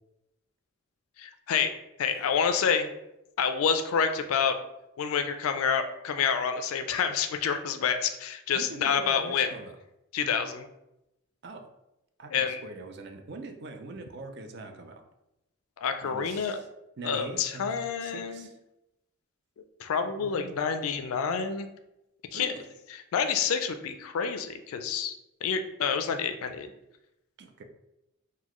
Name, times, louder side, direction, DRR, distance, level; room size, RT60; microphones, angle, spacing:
voice 1, 1.2-1.7 2.0-2.9 3.4-4.6 5.0-9.5 10.1-10.7 12.3-12.6 15.8-16.6 17.0-18.5 19.8-21.7 22.3-22.5 23.1-25.1 25.4-26.7, left 6 dB, 85° left, 8 dB, 0.4 m, -28 dB
voice 2, 8.5-9.8 10.2-10.3 11.4-11.7 12.2-15.0 16.0-16.7 17.0-18.6 20.2-20.5 22.3-22.7 27.4-27.6, right 3 dB, 50° right, 6 dB, 0.4 m, -43 dB
3.9 x 2.2 x 3.0 m, 0.89 s
head